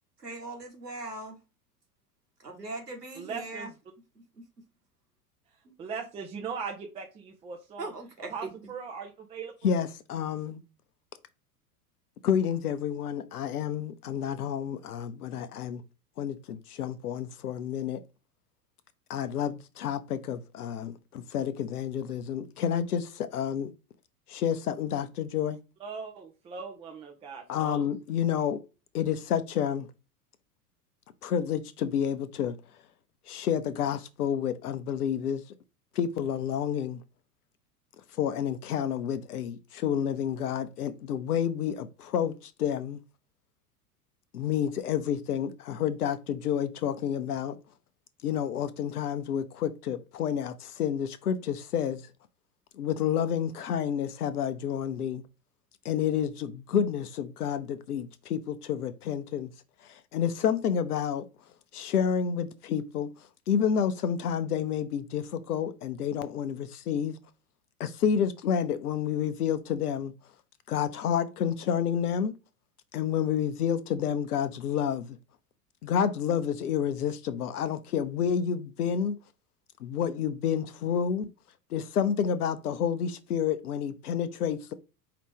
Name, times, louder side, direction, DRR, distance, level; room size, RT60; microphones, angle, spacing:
voice 1, 0.2-1.4 2.4-3.7 7.8-8.3, right 2 dB, 90° right, 1.5 m, -39 dB
voice 2, 3.2-3.7 5.8-7.9 8.3-9.7 25.8-27.9, right 5 dB, 15° right, 0.5 m, -39 dB
voice 3, 9.6-10.6 12.2-15.8 16.2-18.0 19.1-23.7 24.3-25.6 27.5-28.6 28.9-29.9 31.2-32.6 33.3-35.4 35.9-37.0 38.2-43.0 44.3-47.6 48.2-52.1 52.8-55.2 55.8-59.5 59.9-61.2 61.7-63.1 63.5-67.2 67.8-70.1 70.7-72.3 72.9-75.2 75.8-79.2 79.8-81.3 81.7-84.7, left 8 dB, 70° left, 0.7 m, -29 dB
4.9 x 2.8 x 3.4 m
figure-of-eight pair, 85°, 46 cm